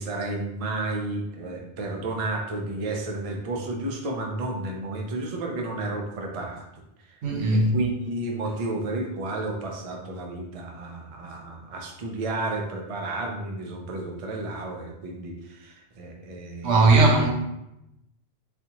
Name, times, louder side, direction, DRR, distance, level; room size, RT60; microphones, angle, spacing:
voice 1, 0.0-6.6 7.0-7.2 7.5-17.0, right 2 dB, 45° right, 0.5 m, -32 dB
voice 2, 7.2-7.7 16.6-17.3, right 2 dB, 80° right, 1.0 m, -18 dB
4.2 x 2.8 x 2.8 m
omnidirectional pair, 1.1 m